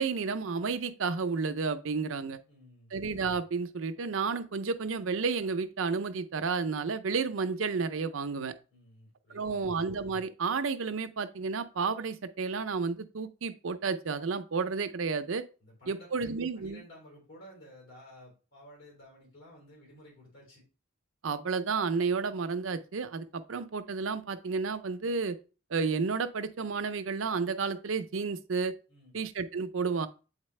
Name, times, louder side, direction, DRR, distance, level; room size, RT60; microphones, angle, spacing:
voice 1, 0.0-2.4 2.9-8.5 9.3-15.4 15.9-16.8 21.2-25.4 25.7-28.7 29.1-30.1, right 5 dB, 90° right, 0.6 m, -31 dB
voice 2, 2.5-3.0 8.7-9.8 15.6-20.6 28.9-29.2, equal, 80° left, 3.6 m, -54 dB
8.1 x 4.1 x 3.2 m
head